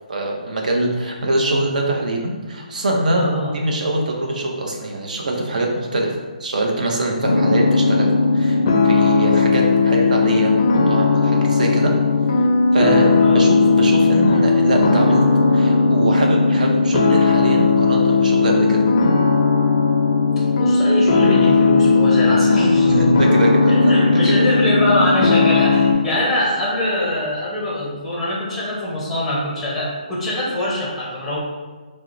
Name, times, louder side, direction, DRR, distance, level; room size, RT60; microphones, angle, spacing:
voice 1, 0.1-6.1 6.4-8.6 8.8-10.5 10.9-11.9 12.7-15.2 15.5-18.8 22.9-24.3, right 1 dB, 65° right, 0 dB, 0.7 m, -23 dB
voice 2, 3.2-3.5 7.0-7.1 13.1-13.4 20.5-22.9 23.9-31.4, left 1 dB, ahead, -7 dB, 0.7 m, -23 dB
sound 1, 7.2-25.9, left 3 dB, 35° left, 0.4 m, -16 dB
4.5 x 2.1 x 2.5 m, 1.4 s
hypercardioid pair, 160°, 5 cm